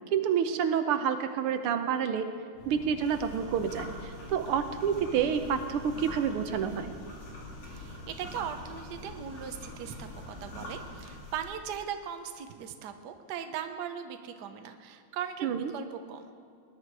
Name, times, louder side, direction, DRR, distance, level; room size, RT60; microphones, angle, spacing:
voice 1, 0.1-2.3 2.7-3.9 4.3-6.9 15.4-15.7, right 7 dB, 85° right, 8 dB, 1.7 m, -28 dB
sound 1, 2.5-11.2, left 1 dB, 20° left, 3.8 m, -47 dB
sound 2, 3.0-11.5, left 2 dB, 85° left, 3.6 m, -46 dB
voice 2, 7.7-16.3, right 8 dB, 60° right, 7 dB, 1.3 m, -39 dB
20.0 x 10.5 x 4.7 m, 2.4 s
omnidirectional pair, 2.4 m